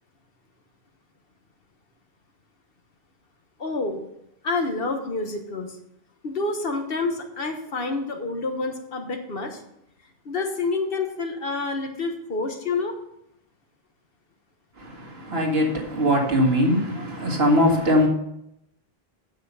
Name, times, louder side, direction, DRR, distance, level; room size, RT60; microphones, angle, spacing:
voice 1, 3.6-4.0 4.4-5.7 6.2-9.6 10.2-12.9, left 3 dB, 65° left, 1.5 m, -28 dB
voice 2, 14.8-18.1, equal, 75° right, 2.1 m, -21 dB
9.0 x 7.3 x 5.5 m
omnidirectional pair, 1.0 m